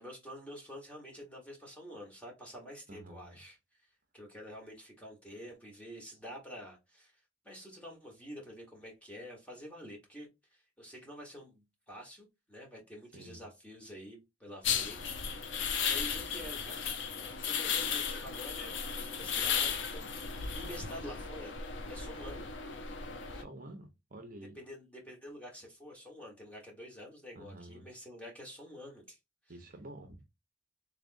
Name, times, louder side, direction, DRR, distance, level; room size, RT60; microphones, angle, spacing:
voice 1, 0.0-3.6 4.1-7.1 7.4-16.9 17.2-21.5 21.9-22.5 24.5-29.2, equal, 5° left, 1.4 m, -48 dB
voice 2, 2.9-3.4 13.1-13.4 23.3-24.6 27.3-27.9 29.5-30.2, right 1 dB, 45° right, 0.8 m, -49 dB
sound 1, 14.6-23.4, left 6 dB, 75° left, 0.6 m, -35 dB
3.5 x 3.3 x 2.5 m
head